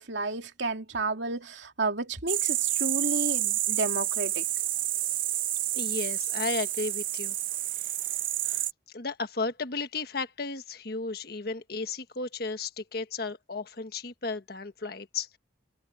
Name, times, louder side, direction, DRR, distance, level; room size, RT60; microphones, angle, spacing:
voice 1, 0.0-4.5, right 3 dB, 80° right, 2.8 m, -32 dB
sound 1, 2.3-8.7, right 13 dB, 50° right, 0.7 m, -29 dB
voice 2, 5.7-7.4 7.8-7.9 8.4-8.6 8.9-15.4, left 3 dB, 55° left, 1.4 m, -34 dB
head